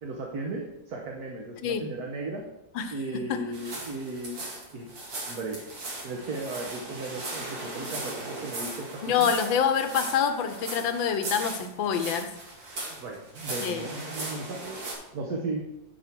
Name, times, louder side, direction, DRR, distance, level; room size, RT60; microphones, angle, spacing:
voice 1, 0.0-2.4 2.9-4.9 5.3-5.6 6.0-9.3 12.9-14.8 15.1-15.6, right 2 dB, 55° right, -1 dB, 1.5 m, -36 dB
voice 2, 2.7-3.4 9.0-12.3 13.6-13.9, left 7 dB, 90° left, 8 dB, 1.6 m, -27 dB
sound 1, 3.5-14.9, right 2 dB, 75° right, 2.7 m, -38 dB
10.5 x 5.4 x 4.5 m, 0.90 s
omnidirectional pair, 2.1 m